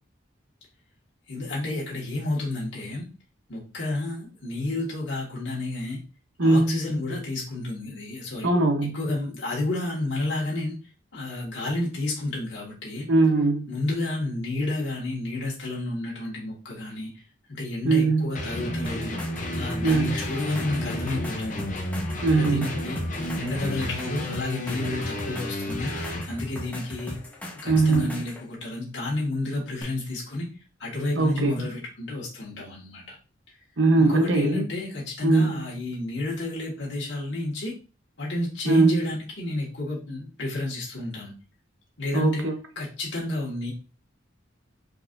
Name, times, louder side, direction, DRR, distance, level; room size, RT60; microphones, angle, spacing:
voice 1, 1.3-3.1 3.5-6.0 6.4-8.5 8.9-10.7 11.1-13.1 13.7-17.1 17.5-19.2 19.6-21.6 22.3-27.2 27.6-30.5 30.8-33.2 33.5-33.6 34.0-37.7 38.2-41.3 42.0-42.5 42.8-43.7, left 2 dB, 65° left, -4 dB, 1.7 m, -31 dB
voice 2, 6.4-6.8 8.4-9.0 13.1-13.7 17.8-18.3 19.8-20.3 22.2-22.7 27.6-28.1 31.2-31.5 33.8-34.6 35.2-35.6 38.7-39.0 42.1-42.5, right 3 dB, 70° right, 5 dB, 0.9 m, -21 dB
sound 1, 18.3-26.3, left 1 dB, 40° left, 0.6 m, -32 dB
sound 2, 18.8-28.4 29.8-29.9, left 1 dB, 10° left, 1.0 m, -38 dB
4.6 x 4.0 x 2.6 m, 0.34 s
head